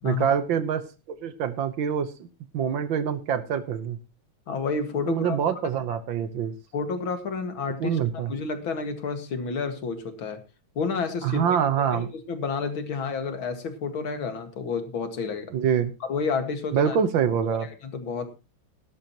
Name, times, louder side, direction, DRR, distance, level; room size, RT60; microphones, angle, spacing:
voice 1, 0.0-2.3 2.5-4.0 5.1-6.5 7.8-8.3 11.2-12.1 15.5-15.9 16.7-17.7, right 8 dB, 70° right, 12 dB, 1.8 m, -25 dB
voice 2, 4.5-5.4 6.7-10.4 10.8-11.4 11.9-15.5 16.1-17.0 17.5-18.3, left 4 dB, 70° left, 7 dB, 2.7 m, -30 dB
17.5 x 12.0 x 3.0 m, 0.29 s
omnidirectional pair, 2.3 m